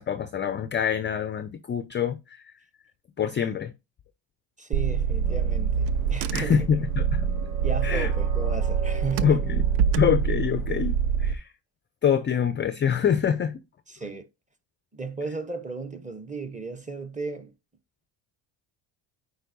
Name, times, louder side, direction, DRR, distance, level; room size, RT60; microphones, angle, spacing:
voice 1, 0.0-2.5 3.2-3.7 6.3-7.3 7.8-8.1 9.2-9.7 10.0-11.5 12.0-13.6, left 8 dB, 25° left, 0.4 m, -25 dB
voice 2, 4.6-6.7 7.6-9.4 13.9-14.3 14.9-17.5, right 3 dB, 15° right, 0.8 m, -34 dB
Car / Engine, 4.7-11.3, right 7 dB, 90° right, 0.6 m, -25 dB
sound 1, 5.2-10.7, right 4 dB, 30° right, 1.6 m, -42 dB
9.1 x 4.3 x 2.6 m
cardioid pair, 95°, 50 cm